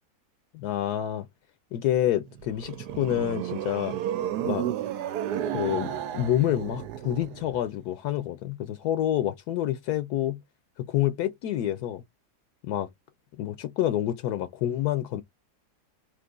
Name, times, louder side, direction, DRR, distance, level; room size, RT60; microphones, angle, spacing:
voice 1, 0.5-1.3 1.7-4.0 4.4-4.7 5.5-10.4 10.8-12.0 12.7-12.9 13.4-15.2, left 12 dB, 75° left, 1.1 m, -28 dB
sound 1, 2.3-7.6, right 11 dB, 80° right, 1.2 m, -32 dB
3.7 x 3.0 x 3.7 m
omnidirectional pair, 1.7 m